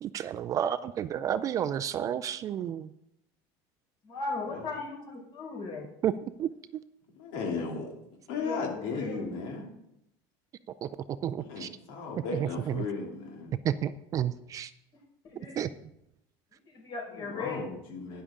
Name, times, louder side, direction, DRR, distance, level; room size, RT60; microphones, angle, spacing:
voice 1, 0.0-2.9 6.0-6.1 6.4-6.5 10.8-10.9 11.2-11.7 12.3-12.8 13.6-14.7 15.6-15.7, right 10 dB, 30° right, 14 dB, 0.4 m, -31 dB
voice 2, 4.0-5.9 8.4-9.3 15.3-15.5 16.6-17.7 18.1-18.2, left 3 dB, 45° left, -1 dB, 4.9 m, -37 dB
voice 3, 7.2-7.9 8.3-9.7 11.4-13.5 17.1-18.2, left 4 dB, 75° left, 0 dB, 2.8 m, -36 dB
12.0 x 10.0 x 3.7 m, 0.80 s
cardioid pair, 160°, 11 cm